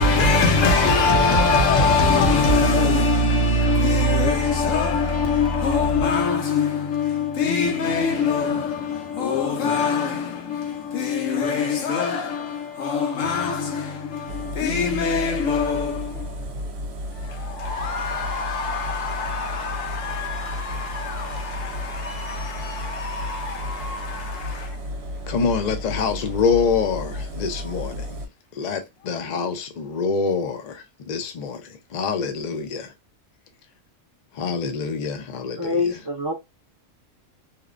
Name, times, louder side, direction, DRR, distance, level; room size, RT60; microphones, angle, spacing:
voice 1, 0.0-16.5 17.2-24.8, left 3 dB, 85° left, 1.1 m, -23 dB
Engine, 14.3-28.3, left 1 dB, 65° right, 0.8 m, -33 dB
voice 2, 25.3-28.2 28.5-32.9 34.3-35.9, left 5 dB, 60° left, 0.4 m, -26 dB
voice 3, 35.6-36.3, left 3 dB, 35° right, 0.4 m, -24 dB
2.8 x 2.0 x 2.4 m
omnidirectional pair, 1.3 m